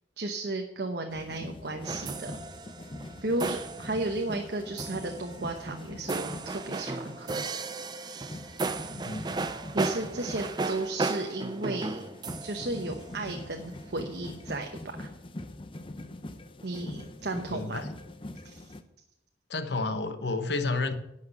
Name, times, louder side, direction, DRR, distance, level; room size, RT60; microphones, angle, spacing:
voice 1, 0.2-2.4 3.2-7.5 9.7-12.0 12.4-14.7 15.0-15.1 16.6-17.8 18.4-18.6, right 2 dB, 70° right, 3 dB, 1.0 m, -34 dB
sound 1, 1.1-18.8, left 1 dB, 30° left, 0.6 m, -43 dB
sound 2, 1.8-13.7, right 3 dB, 25° right, 0.5 m, -35 dB
voice 2, 17.5-17.9 19.5-20.9, left 3 dB, 75° left, 8 dB, 1.0 m, -30 dB
11.0 x 5.8 x 7.7 m, 0.87 s
head